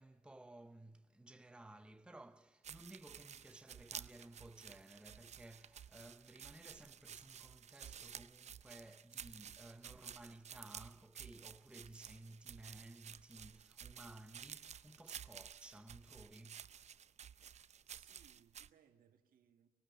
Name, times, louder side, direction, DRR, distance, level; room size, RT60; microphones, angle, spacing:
voice 1, 0.0-16.8, right 1 dB, 5° right, 0.8 m, -57 dB
sound 1, 2.6-18.7, right 8 dB, 40° right, 0.6 m, -53 dB
voice 2, 17.9-19.7, right 9 dB, 60° right, 1.7 m, -69 dB
21.0 x 18.0 x 7.1 m
hypercardioid pair, 50°, 17 cm